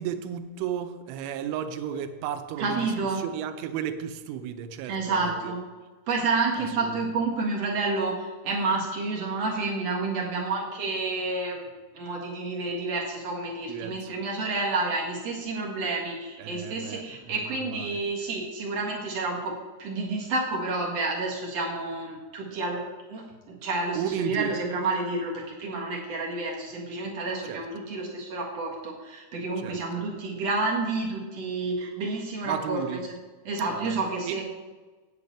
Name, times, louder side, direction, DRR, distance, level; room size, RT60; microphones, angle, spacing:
voice 1, 0.0-5.5 6.6-7.1 13.7-14.1 16.4-18.0 23.9-24.5 27.4-27.6 29.6-29.8 32.4-33.0 33.7-34.0 34.2-34.4, right 9 dB, 85° right, 8 dB, 3.2 m, -34 dB
voice 2, 2.6-3.2 4.9-5.6 6.1-22.8 23.1-32.8 33.4-34.4, right 3 dB, 60° right, -2 dB, 1.6 m, -29 dB
8.6 x 6.8 x 8.4 m, 1.3 s
omnidirectional pair, 5.5 m